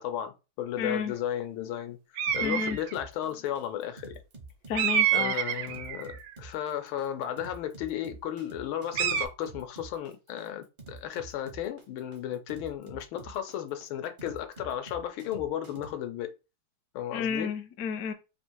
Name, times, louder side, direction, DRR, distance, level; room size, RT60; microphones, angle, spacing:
voice 1, 0.0-2.0 2.3-4.2 5.1-16.3 16.9-17.5, left 10 dB, 85° left, 1.6 m, -34 dB
voice 2, 0.8-1.1 2.4-2.8 4.7-5.4 17.1-18.1, left 6 dB, 65° left, 0.8 m, -31 dB
sound 1, 2.2-2.9 4.7-6.3 8.9-9.3, right 9 dB, 75° right, 1.2 m, -27 dB
sound 2, 2.3-15.9, right 3 dB, 50° right, 0.6 m, -48 dB
3.8 x 2.6 x 4.4 m
omnidirectional pair, 2.2 m